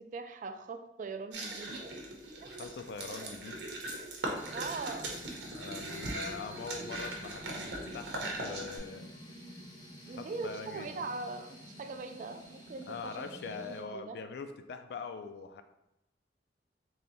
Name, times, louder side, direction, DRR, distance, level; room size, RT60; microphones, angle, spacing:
voice 1, 0.1-1.8 4.5-5.1 10.1-13.2 13.6-14.2, right 4 dB, 45° right, 7 dB, 0.3 m, -41 dB
sound 1, 1.3-8.8, right 1 dB, 85° right, 0.8 m, -40 dB
voice 2, 2.5-3.7 5.5-9.1 10.2-10.9 12.9-15.6, left 4 dB, 65° left, 8 dB, 0.3 m, -43 dB
sound 2, 4.3-13.8, equal, 25° left, 0.7 m, -50 dB
3.2 x 2.7 x 4.0 m, 0.89 s
head